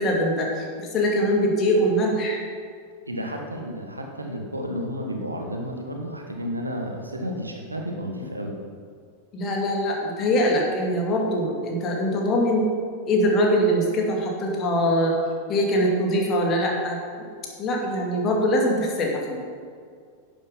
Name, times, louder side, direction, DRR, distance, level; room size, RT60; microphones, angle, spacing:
voice 1, 0.0-2.4 9.3-12.7 13.1-15.1 15.5-17.0 17.6-19.4, equal, 30° left, 0 dB, 2.3 m, -23 dB
voice 2, 3.1-8.6, equal, 80° right, 2 dB, 1.4 m, -32 dB
11.0 x 7.3 x 5.5 m, 2.1 s
figure-of-eight pair, 90°, 0 cm